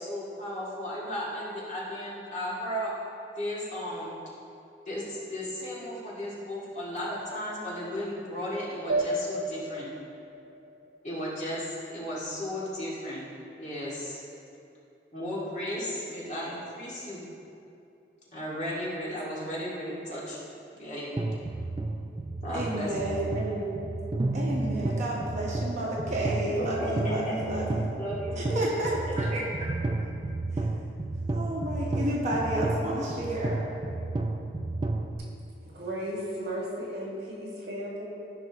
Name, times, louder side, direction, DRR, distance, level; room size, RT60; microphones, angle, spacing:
voice 1, 0.0-2.9 3.4-4.2 4.9-9.9 11.0-13.3 13.6-14.2 15.1-17.2 18.3-20.4 20.8-21.1 22.4-23.2 26.8-27.7 28.0-28.7 29.3-29.5, equal, 40° left, -7 dB, 2.1 m, -35 dB
sound 1, 8.9-11.9, right 1 dB, 85° right, 0.8 m, -33 dB
sound 2, 21.2-35.2, right 2 dB, 25° right, 0.3 m, -32 dB
voice 2, 22.5-24.0 24.3-27.8 28.3-29.5 30.5-30.6 31.3-33.6, right 1 dB, 40° right, -4 dB, 1.1 m, -31 dB
voice 3, 35.6-38.0, equal, 60° right, -5 dB, 2.0 m, -35 dB
14.0 x 5.4 x 3.0 m, 2.7 s
head